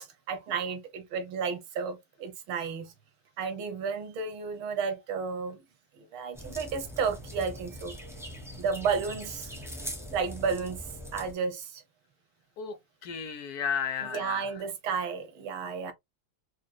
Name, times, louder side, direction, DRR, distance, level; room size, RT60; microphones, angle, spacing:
voice 1, 0.0-2.9 3.4-5.6 6.1-7.9 8.6-9.5 10.1-10.8 11.1-11.8 14.1-15.9, right 5 dB, 80° right, 1.7 m, -32 dB
sound 1, 6.3-11.3, equal, ahead, 0.6 m, -42 dB
voice 2, 13.0-14.5, left 7 dB, 65° left, 0.9 m, -33 dB
5.0 x 3.0 x 2.2 m
omnidirectional pair, 2.2 m